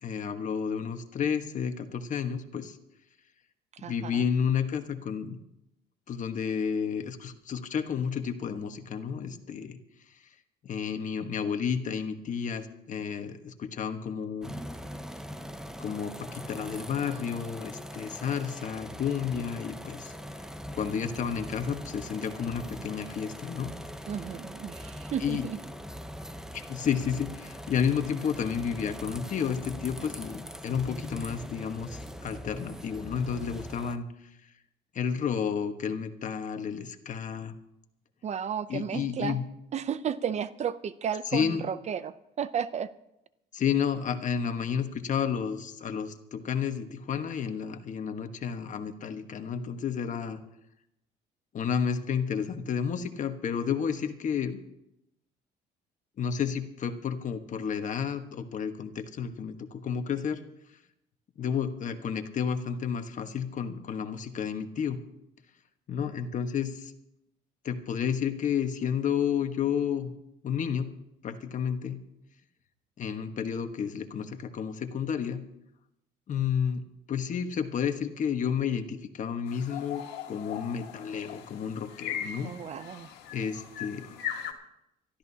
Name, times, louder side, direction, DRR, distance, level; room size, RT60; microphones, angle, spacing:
voice 1, 0.0-2.8 3.8-5.4 6.1-9.8 10.6-14.5 15.8-20.1 20.7-23.7 25.2-25.4 26.5-34.1 34.9-37.5 38.7-39.4 41.3-41.6 43.5-50.4 51.5-54.6 56.2-60.4 61.4-65.0 65.9-66.9 67.6-70.1 70.4-70.9 71.2-72.0 73.0-75.4 76.3-80.0 80.3-82.5 83.3-84.1, left 7 dB, 50° left, 7 dB, 1.4 m, -31 dB
voice 2, 3.7-4.3 24.1-25.6 38.2-39.4 39.7-42.9 82.4-83.1, right 8 dB, 40° right, 15 dB, 0.6 m, -33 dB
sound 1, 14.4-34.0, equal, 5° right, 0.8 m, -42 dB
sound 2, 79.5-84.5, left 9 dB, 85° left, 1.8 m, -39 dB
24.5 x 13.0 x 2.8 m, 0.84 s
cardioid pair, 110°, 17 cm